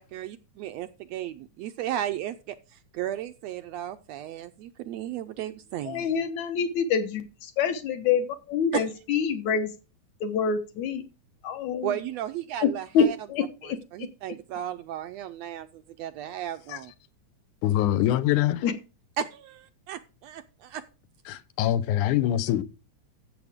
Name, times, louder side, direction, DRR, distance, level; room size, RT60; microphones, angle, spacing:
voice 1, 0.0-2.6 2.9-6.1 8.7-8.8 11.8-13.2 13.9-16.9 19.2-20.8, right 11 dB, 75° right, 1.6 m, -34 dB
voice 2, 5.8-9.7 10.2-11.0 11.4-12.0 12.6-14.1 18.6-18.7, left 6 dB, 70° left, 2.5 m, -26 dB
voice 3, 17.6-18.6 21.3-22.6, left 12 dB, 90° left, 2.3 m, -24 dB
14.5 x 7.1 x 3.5 m
omnidirectional pair, 3.4 m